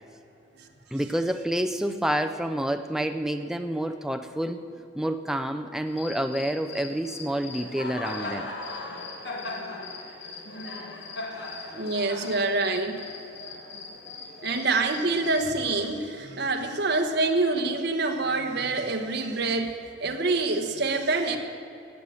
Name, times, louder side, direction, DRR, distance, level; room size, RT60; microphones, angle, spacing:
voice 1, 0.9-4.6 4.9-8.5, right 1 dB, 5° right, 7 dB, 0.5 m, -28 dB
Cricket, 5.9-15.9, left 3 dB, 60° left, 2.1 m, -39 dB
voice 2, 11.7-13.0 14.4-21.4, right 3 dB, 60° right, 4 dB, 1.2 m, -26 dB
17.0 x 7.0 x 9.5 m, 2.8 s
head